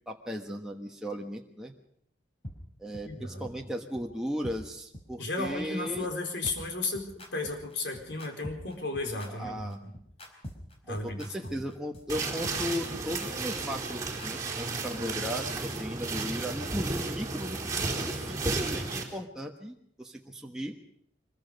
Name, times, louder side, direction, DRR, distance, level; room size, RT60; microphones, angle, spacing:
voice 1, 0.1-1.7 2.8-6.1 9.4-9.8 10.9-20.8, equal, 5° right, 0 dB, 1.3 m, -36 dB
sound 1, 2.4-2.5 2.9-3.0 3.4-3.5 3.9-4.0 4.4-4.6 4.9-5.0 5.4-5.5 5.9-6.0 6.4-14.3, equal, 30° left, 4.4 m, -44 dB
voice 2, 3.0-3.7 5.2-9.8 10.8-11.5, left 2 dB, 70° left, 2 dB, 4.5 m, -34 dB
sound 2, 12.1-19.0, right 3 dB, 20° right, 4.1 m, -33 dB
25.0 x 22.0 x 5.3 m, 0.69 s
head